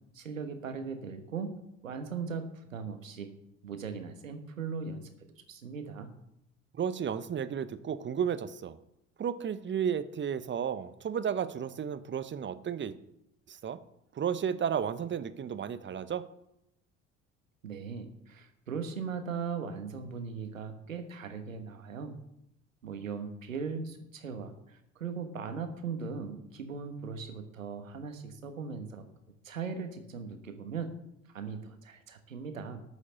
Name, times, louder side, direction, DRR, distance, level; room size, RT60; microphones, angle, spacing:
voice 1, 0.1-1.5 1.8-3.3 3.6-5.1 5.5-6.1 17.6-22.1 22.8-29.0 29.4-30.9 31.3-32.8, right 5 dB, 85° right, 7 dB, 1.3 m, -39 dB
voice 2, 6.8-8.8 9.2-12.9 13.5-13.8 14.1-16.2, right 8 dB, 30° right, 14 dB, 0.9 m, -33 dB
12.5 x 6.4 x 7.5 m, 0.81 s
figure-of-eight pair, 60°, 39 cm